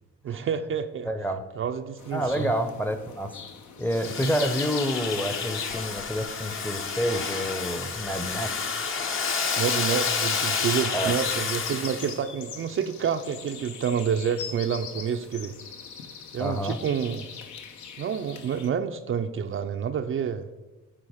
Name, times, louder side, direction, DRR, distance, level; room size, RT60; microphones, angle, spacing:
voice 1, 0.2-1.1 1.5-2.5 9.6-15.6 16.3-17.3 18.0-20.5, right 7 dB, 45° right, 7 dB, 0.4 m, -28 dB
voice 2, 1.0-1.4 2.1-3.4 3.8-8.8 10.9-11.1 16.4-16.8, equal, 5° left, 9 dB, 0.7 m, -28 dB
sound 1, 2.0-18.7, left 7 dB, 75° left, 1.0 m, -39 dB
Domestic sounds home sounds, 3.9-12.2, left 5 dB, 45° left, 0.9 m, -30 dB
9.7 x 3.9 x 4.9 m, 1.2 s
cardioid pair, 90°, 30 cm